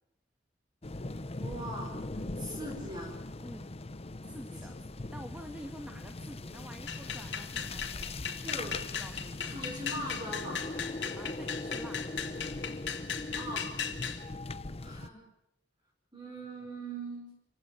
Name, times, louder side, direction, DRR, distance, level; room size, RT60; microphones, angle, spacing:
sound 1, 0.8-15.1, left 2 dB, 30° left, 0.8 m, -40 dB
voice 1, 1.4-3.2 8.4-8.8 9.5-10.7 13.3-13.7 14.8-15.2 16.1-17.3, right 1 dB, 25° right, 0 dB, 5.3 m, -40 dB
voice 2, 3.4-3.8 4.2-8.7 9.0-9.7 11.2-12.2, equal, 5° right, 4 dB, 1.8 m, -48 dB
sound 2, 6.9-14.2, left 7 dB, 65° left, 2.5 m, -37 dB
27.5 x 16.5 x 7.9 m, 0.85 s
head